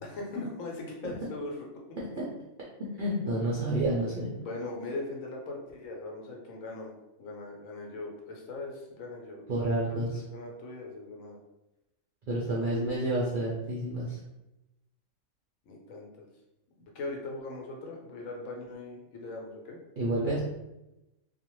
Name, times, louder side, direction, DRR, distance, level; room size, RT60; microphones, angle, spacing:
voice 1, 0.0-1.7 2.1-2.2 4.4-6.9 7.2-9.5 9.7-11.4 12.4-12.8 15.6-16.3 16.9-19.8, left 2 dB, 75° left, 0 dB, 1.0 m, -40 dB
voice 2, 3.0-4.3 9.5-10.2 12.3-14.2 20.0-20.4, right 1 dB, 65° right, -6 dB, 0.5 m, -29 dB
2.4 x 2.1 x 2.9 m, 0.95 s
omnidirectional pair, 1.5 m